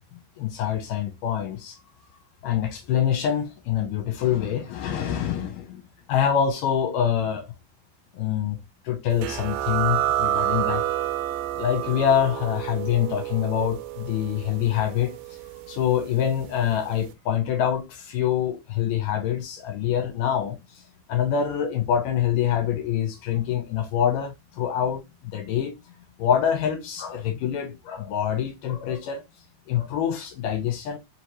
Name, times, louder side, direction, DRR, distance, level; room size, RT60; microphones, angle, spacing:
voice 1, 0.4-1.8 2.4-5.8 6.1-7.5 8.1-8.6 8.9-10.8 11.6-15.4 15.7-20.8 21.1-25.7 26.2-29.2 29.7-31.0, left 9 dB, 75° left, 2.3 m, -25 dB
sound 1, 9.2-16.5, right 13 dB, 90° right, 2.4 m, -29 dB
5.3 x 3.1 x 2.8 m
omnidirectional pair, 4.2 m